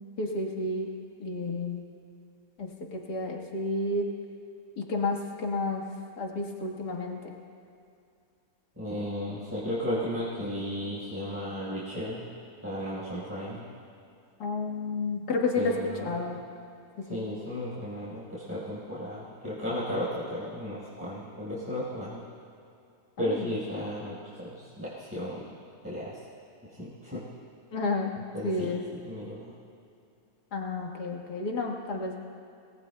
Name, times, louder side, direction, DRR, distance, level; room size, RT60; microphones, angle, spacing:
voice 1, 0.2-0.9 1.2-1.8 2.6-4.1 4.8-5.8 6.2-7.3 14.4-15.7 16.0-16.4 17.0-17.2 27.7-28.1 28.4-28.9 30.5-32.2, left 3 dB, 80° left, 0 dB, 2.2 m, -31 dB
voice 2, 8.8-12.3 12.6-13.6 15.5-16.3 17.0-22.2 23.2-25.4 25.8-26.2 26.6-27.2 28.3-29.5, equal, 10° right, -11 dB, 4.6 m, -34 dB
27.0 x 19.5 x 2.3 m, 2.5 s
omnidirectional pair, 1.7 m